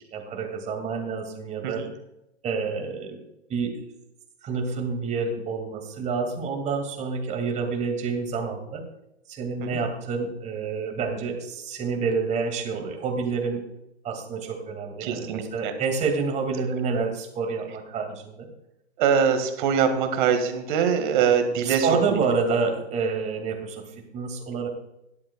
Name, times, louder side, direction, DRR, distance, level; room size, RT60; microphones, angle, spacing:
voice 1, 0.1-1.8 2.4-3.2 3.5-3.8 4.4-8.8 9.3-13.6 14.0-18.5 21.7-24.7, right 5 dB, 20° right, 4 dB, 2.3 m, -28 dB
voice 2, 15.0-15.7 19.0-22.2, right 7 dB, 45° right, 7 dB, 2.0 m, -23 dB
16.5 x 11.5 x 2.4 m, 0.86 s
figure-of-eight pair, 115°, 34 cm